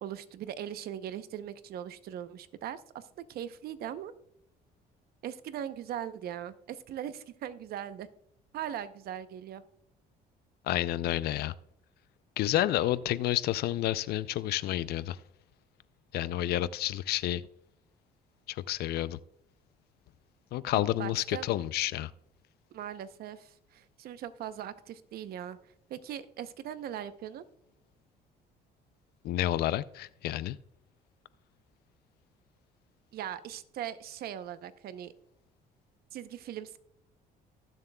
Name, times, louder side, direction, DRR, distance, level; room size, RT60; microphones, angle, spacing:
voice 1, 0.0-4.1 5.2-8.1 8.5-9.6 20.7-21.5 22.7-27.4 33.1-35.1 36.1-36.8, right 10 dB, 65° right, 13 dB, 0.7 m, -40 dB
voice 2, 10.7-11.5 12.4-15.2 16.1-17.4 18.5-19.2 20.5-22.1 29.2-30.6, left 14 dB, 70° left, 17 dB, 0.4 m, -30 dB
19.0 x 7.4 x 2.2 m, 0.72 s
cardioid pair, 110°, 17 cm